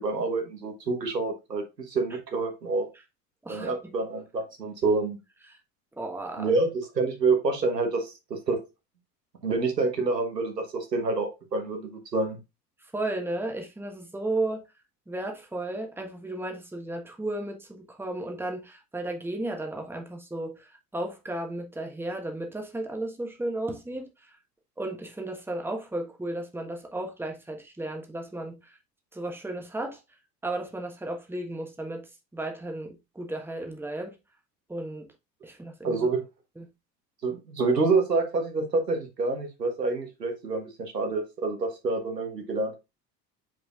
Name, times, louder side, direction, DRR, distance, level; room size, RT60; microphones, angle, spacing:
voice 1, 0.0-2.9 3.5-5.2 6.4-8.6 9.4-12.4 35.8-36.2 37.2-42.7, right 3 dB, 85° right, 1.4 m, -27 dB
voice 2, 3.4-3.7 5.5-5.6 6.0-6.5 12.9-14.6 15.1-24.4 24.8-28.8 29.1-30.0 30.4-34.2 34.7-35.1 35.4-36.1 36.6-36.7, right 2 dB, 5° right, 1.3 m, -34 dB
7.7 x 4.9 x 2.5 m
figure-of-eight pair, 65°, 48 cm